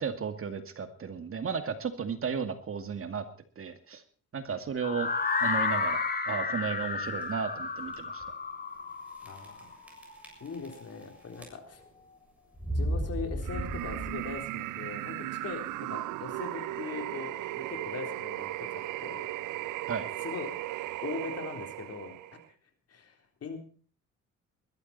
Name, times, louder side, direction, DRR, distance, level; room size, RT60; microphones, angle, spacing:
voice 1, 0.0-3.2 3.6-4.0 4.3-5.1 5.4-8.2 19.9-20.1, right 6 dB, 45° right, 8 dB, 2.3 m, -34 dB
sound 1, 4.8-10.7, left 4 dB, 30° left, 2.4 m, -32 dB
sound 2, 6.8-7.2 7.9-8.0 8.2-8.3 9.2-9.6 9.9-11.0 11.3-11.9 12.5-14.5, right 1 dB, 5° right, 7.4 m, -35 dB
voice 2, 9.2-9.8 10.4-11.8 12.7-19.3 20.2-20.6 21.0-22.2 22.9-23.6, left 5 dB, 55° left, 5 dB, 3.8 m, -41 dB
sound 3, 13.4-22.5, right 16 dB, 85° right, 0.6 m, -37 dB
21.0 x 12.5 x 4.3 m, 0.41 s
cardioid pair, 90°, 30 cm